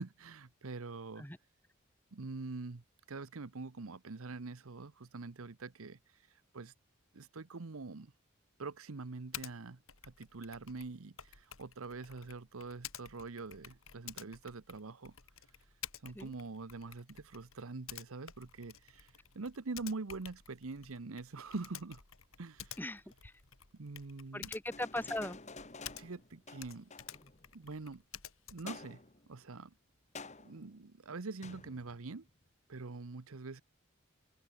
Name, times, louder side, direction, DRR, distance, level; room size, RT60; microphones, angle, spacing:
voice 1, 0.0-1.2 2.1-2.8 3.1-6.0 6.5-6.7 7.1-8.1 8.6-15.1 16.0-22.0 22.4-22.8 23.7-24.5 26.0-26.9 27.5-28.0 28.5-29.0 29.3-29.7 30.4-32.3 32.7-33.6, right 3 dB, 80° right, 0.9 m, -44 dB
Typing, 9.3-9.5 9.9-26.3 26.6-28.8, left 10 dB, 75° left, 3.0 m, -51 dB
voice 2, 22.8-23.3 24.3-25.4, left 1 dB, 10° left, 2.8 m, -39 dB
sound 1, 24.7-27.6 28.7-29.3 30.2-30.7 31.4-32.3, left 4 dB, 30° left, 1.8 m, -50 dB
open air
head